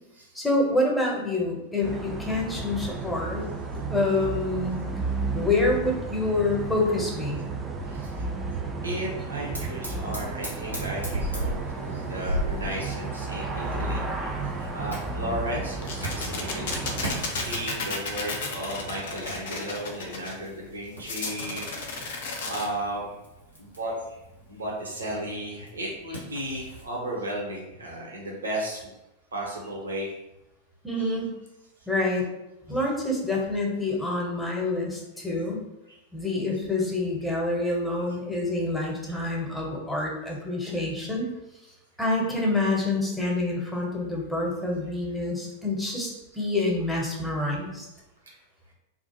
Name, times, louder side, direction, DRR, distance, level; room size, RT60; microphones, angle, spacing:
voice 1, 0.3-3.5 3.9-4.8 5.3-7.5 30.8-31.3 31.9-32.3 32.7-35.6 36.1-41.3 42.0-47.9, left 2 dB, 5° left, -3 dB, 0.7 m, -27 dB
sound 1, 1.8-17.2, right 3 dB, 20° right, 0.3 m, -33 dB
voice 2, 7.9-8.3 8.8-14.3 14.6-21.7 22.2-23.1 23.6-24.2 24.5-28.9 29.3-30.1 31.0-31.1 31.8-31.9 35.9-36.0 39.1-39.2 40.7-40.8 46.1-46.2 48.2-48.4, right 1 dB, 75° right, -2 dB, 0.6 m, -34 dB
Fire, 9.5-26.9, equal, 90° right, 0.9 m, -38 dB
sound 2, 15.8-20.3 21.0-22.7, left 4 dB, 55° left, 0.4 m, -33 dB
2.4 x 2.1 x 2.8 m, 0.94 s
figure-of-eight pair, 90°, 0 cm